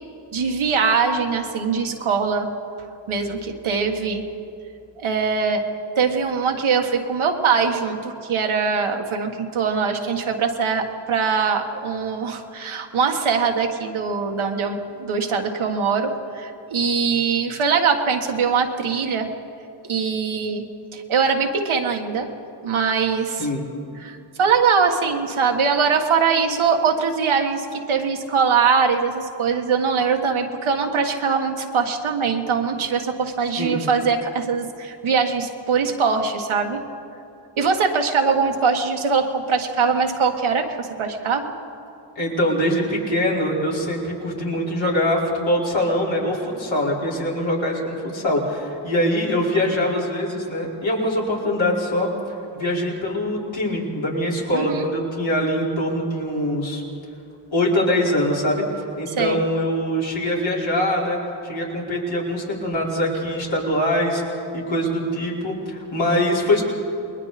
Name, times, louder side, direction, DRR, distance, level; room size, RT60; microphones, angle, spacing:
voice 1, 0.3-2.5 3.1-4.2 5.0-5.6 5.9-19.3 19.9-20.6 20.9-22.3 22.6-23.5 24.0-36.8 37.6-41.5 54.5-54.9 59.1-59.4, right 5 dB, 90° right, 3 dB, 1.7 m, -22 dB
voice 2, 42.1-52.1 52.5-56.8 57.5-58.6 59.0-61.2 61.4-64.2 64.5-66.6, left 1 dB, 70° left, -5 dB, 4.9 m, -23 dB
29.0 x 21.0 x 4.2 m, 2.7 s
cardioid pair, 70°, 47 cm